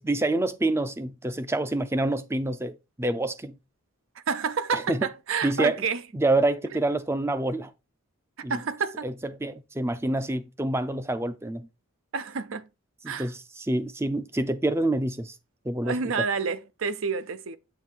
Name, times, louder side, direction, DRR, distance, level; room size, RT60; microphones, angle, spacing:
voice 1, 0.0-3.6 4.7-5.1 5.4-5.8 6.1-7.7 8.4-8.6 9.0-11.7 13.0-15.3 15.6-16.1, right 2 dB, 10° right, 0.4 m, -27 dB
voice 2, 4.3-6.0 8.5-9.1 12.1-12.7 13.1-13.3 15.8-17.6, right 5 dB, 65° right, 0.6 m, -29 dB
7.7 x 3.3 x 4.5 m
head